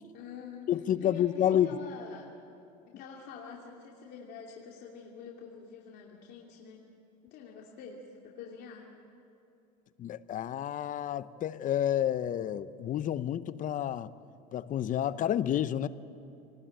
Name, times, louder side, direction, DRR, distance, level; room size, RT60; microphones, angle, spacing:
voice 1, 0.1-0.7 1.0-2.3 3.0-6.9 7.3-8.9, left 6 dB, 55° left, 2.8 m, -46 dB
voice 2, 0.7-1.7 10.0-14.1 14.5-15.9, left 10 dB, 40° left, 0.8 m, -29 dB
27.0 x 19.5 x 9.0 m
supercardioid pair, 115°, 21 cm